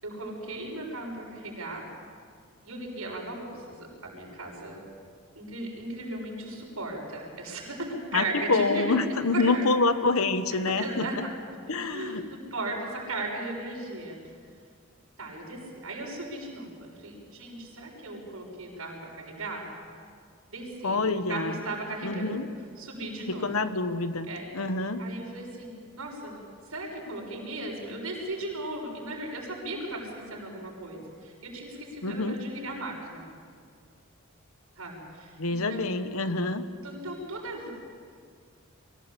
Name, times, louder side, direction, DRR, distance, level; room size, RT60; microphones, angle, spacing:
voice 1, 0.0-1.8 2.6-4.8 5.3-9.0 9.3-9.6 10.7-11.6 11.8-14.2 15.2-19.7 20.5-21.0 21.3-22.4 22.8-23.5 24.3-24.5 25.0-26.4 26.6-33.3 34.7-35.8 36.8-37.7, right 2 dB, 80° right, -1 dB, 6.8 m, -37 dB
voice 2, 8.1-11.3 11.7-12.2 20.8-21.6 22.0-22.4 23.3-24.3 24.5-25.1 32.0-32.4 35.4-36.6, left 3 dB, 75° left, 10 dB, 1.2 m, -27 dB
24.0 x 16.5 x 8.5 m, 2.2 s
head